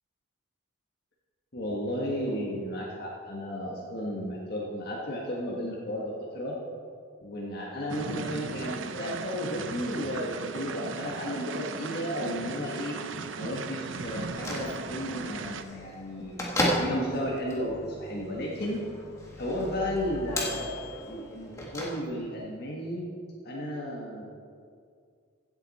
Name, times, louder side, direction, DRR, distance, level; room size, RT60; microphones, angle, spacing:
voice 1, 1.5-6.5 7.2-12.9 13.4-16.4 16.8-18.8 19.4-23.1 23.4-24.2, equal, 50° left, -3 dB, 1.6 m, -33 dB
sound 1, 7.9-15.6, right 4 dB, 70° right, 0.6 m, -37 dB
Bell / Microwave oven, 14.1-22.4, left 1 dB, 15° left, 1.6 m, -35 dB
16.0 x 8.1 x 4.2 m, 2.2 s
head